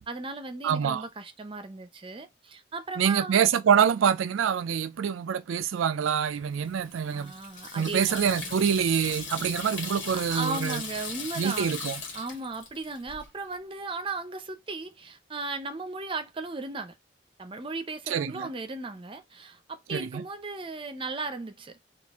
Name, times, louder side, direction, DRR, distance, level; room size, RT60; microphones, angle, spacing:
voice 1, 0.0-3.5 7.1-8.6 10.1-11.7 12.1-16.9 17.4-21.8, right 3 dB, 25° right, 0.6 m, -36 dB
voice 2, 0.6-1.0 3.0-7.3 7.7-10.8 11.4-12.0 18.1-18.5 19.9-20.2, right 7 dB, 90° right, 0.4 m, -25 dB
Water tap faucet / Sink (filling or washing), 6.5-13.3, left 4 dB, 65° left, 1.8 m, -39 dB
4.2 x 2.4 x 3.5 m
head